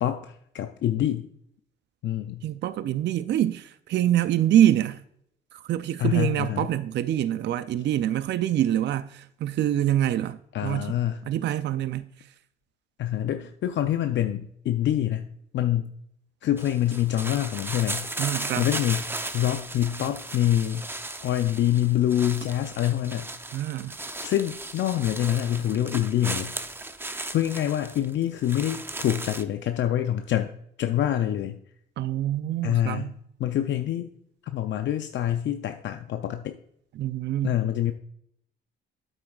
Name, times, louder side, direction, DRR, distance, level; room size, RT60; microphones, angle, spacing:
voice 1, 0.0-1.3 2.0-2.4 6.0-6.7 10.5-11.2 13.0-15.3 15.5-15.9 16.4-18.1 18.6-20.9 21.2-23.3 24.2-26.5 27.3-30.5 30.8-31.6 32.6-33.1 33.4-34.1 34.4-36.6 37.4-37.9, left 11 dB, 70° left, 0.6 m, -26 dB
voice 2, 2.4-5.0 5.5-11.0 11.3-12.3 18.2-18.7 23.5-24.0 32.0-33.2 37.0-37.6, right 12 dB, 60° right, 0.4 m, -25 dB
sound 1, 16.6-29.4, right 2 dB, 10° right, 0.6 m, -36 dB
8.8 x 8.0 x 2.4 m
cardioid pair, 90°, 20 cm